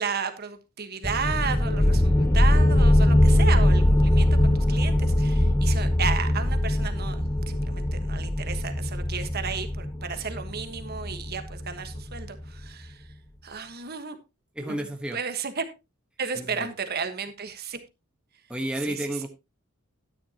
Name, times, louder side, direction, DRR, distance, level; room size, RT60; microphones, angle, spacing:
voice 1, 0.0-13.1 13.4-14.2 14.6-14.8 15.1-15.6 16.2-17.8 18.9-19.1, right 6 dB, 45° right, 8 dB, 1.3 m, -33 dB
sound 1, 1.0-12.4, left 1 dB, 10° left, 0.6 m, -22 dB
voice 2, 14.5-15.2 16.3-16.7 18.5-19.3, right 1 dB, 5° right, 3 dB, 1.2 m, -31 dB
12.0 x 10.0 x 2.9 m, 0.25 s
head